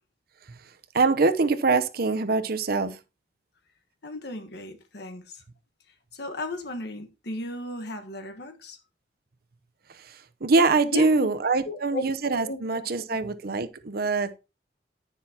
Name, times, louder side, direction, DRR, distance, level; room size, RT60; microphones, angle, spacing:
voice 1, 0.9-3.0 9.9-14.4, right 3 dB, 60° right, 0.8 m, -24 dB
voice 2, 4.0-5.4 6.1-8.8 10.9-11.3 11.6-12.0 12.4-13.2, left 2 dB, 65° left, 1.4 m, -35 dB
10.0 x 9.8 x 2.9 m
head